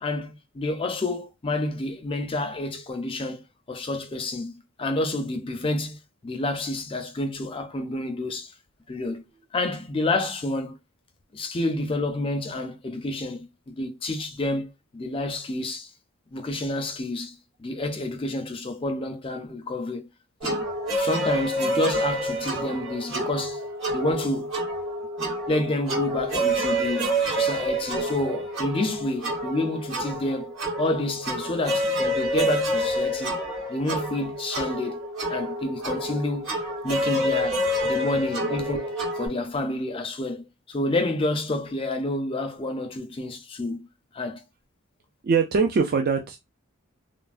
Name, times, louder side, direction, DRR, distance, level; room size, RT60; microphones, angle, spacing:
voice 1, 0.0-3.4 3.7-8.5 8.9-9.2 9.5-10.8 11.3-14.7 14.9-15.9 16.3-20.1 20.4-20.6 21.0-23.6 23.9-24.5 25.2-33.4 33.7-35.0 35.3-36.5 36.8-43.9 44.1-44.4, left 2 dB, 25° left, 0.4 m, -29 dB
sound 1, 20.4-39.3, right 1 dB, 65° right, 1.6 m, -28 dB
voice 2, 45.2-46.4, right 5 dB, 45° right, 0.3 m, -22 dB
3.1 x 2.0 x 2.4 m
head